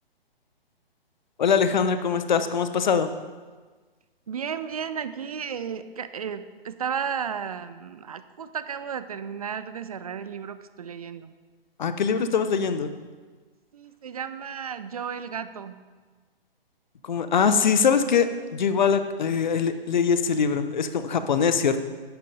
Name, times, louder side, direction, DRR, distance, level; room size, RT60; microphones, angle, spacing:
voice 1, 1.4-3.1 11.8-12.9 17.0-21.8, left 6 dB, 50° left, 10 dB, 0.8 m, -22 dB
voice 2, 4.3-11.3 13.7-15.8, right 7 dB, 40° right, 13 dB, 0.5 m, -33 dB
11.0 x 10.0 x 3.8 m, 1.4 s
figure-of-eight pair, 130°, 30 cm